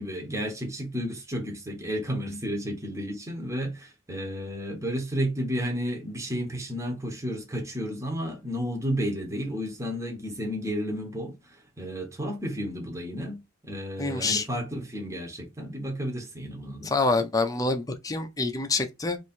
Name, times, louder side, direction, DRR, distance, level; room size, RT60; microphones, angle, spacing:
voice 1, 0.0-13.4 13.7-16.9, equal, 15° right, 1.0 m, -32 dB
voice 2, 14.0-14.4 16.8-19.2, left 3 dB, 20° left, 0.6 m, -26 dB
3.1 x 2.6 x 4.3 m
head